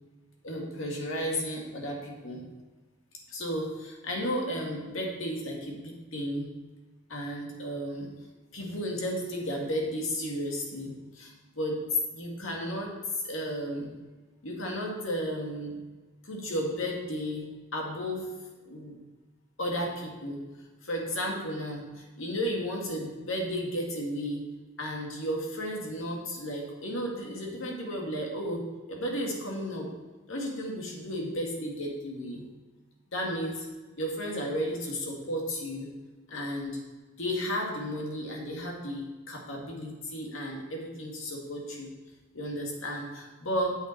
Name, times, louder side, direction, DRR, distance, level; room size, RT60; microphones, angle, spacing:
voice 1, 0.4-2.4 3.3-6.5 7.1-8.1 8.5-11.8 12.1-12.9 13.2-13.9 14.4-15.7 16.2-18.3 18.7-19.0 19.6-20.4 20.8-24.4 24.8-28.6 28.9-29.9 30.3-32.4 33.1-33.7 34.0-35.9 36.3-36.8 37.2-41.9 42.3-43.8, equal, 90° left, 0 dB, 2.0 m, -33 dB
8.0 x 6.9 x 4.5 m, 1.2 s
head